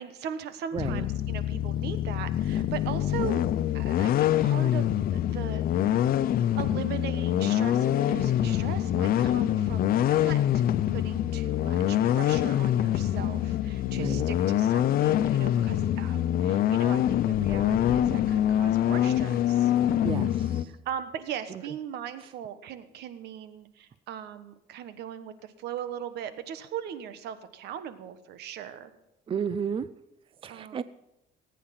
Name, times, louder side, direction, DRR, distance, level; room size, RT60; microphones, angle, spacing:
voice 1, 0.0-3.4 3.7-10.6 10.9-19.7 20.7-28.9 30.5-30.8, right 9 dB, 80° right, 12 dB, 1.3 m, -39 dB
voice 2, 0.7-1.1 14.0-14.3 20.0-20.7 29.3-29.9 30.4-30.8, right 7 dB, 30° right, 15 dB, 0.5 m, -32 dB
sound 1, 0.8-20.6, left 11 dB, 60° left, 0.7 m, -25 dB
Bass guitar, 8.4-14.6, left 4 dB, 40° left, 3.6 m, -48 dB
sound 2, 17.3-18.9 19.8-19.9 25.8-25.9, left 8 dB, 80° left, 1.3 m, -38 dB
18.5 x 9.3 x 5.9 m, 0.87 s
cardioid pair, 110°, 17 cm